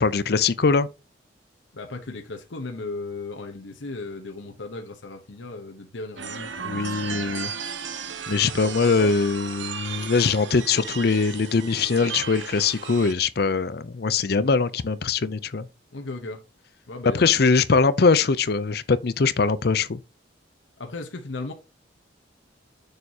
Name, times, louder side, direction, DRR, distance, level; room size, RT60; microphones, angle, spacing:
voice 1, 0.0-0.9 6.6-7.5 8.3-15.7 17.1-20.0, left 4 dB, 55° left, 0.5 m, -22 dB
voice 2, 1.7-7.2 8.6-9.2 15.9-16.4 16.9-17.3 20.8-21.5, left 3 dB, 85° left, 1.0 m, -36 dB
sound 1, 6.2-13.1, right 6 dB, 80° right, 0.9 m, -35 dB
6.7 x 6.6 x 2.8 m
head